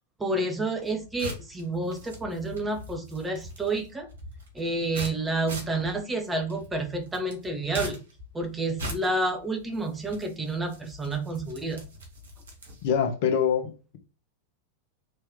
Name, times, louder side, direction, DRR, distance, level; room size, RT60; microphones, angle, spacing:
voice 1, 0.2-4.1 4.5-8.0 8.3-11.8, right 2 dB, 10° right, 0.9 m, -29 dB
sound 1, 0.7-13.0, equal, 65° right, 1.8 m, -42 dB
voice 2, 12.8-14.0, left 7 dB, 50° left, 0.9 m, -25 dB
4.3 x 3.3 x 3.7 m
figure-of-eight pair, 90°, 0 cm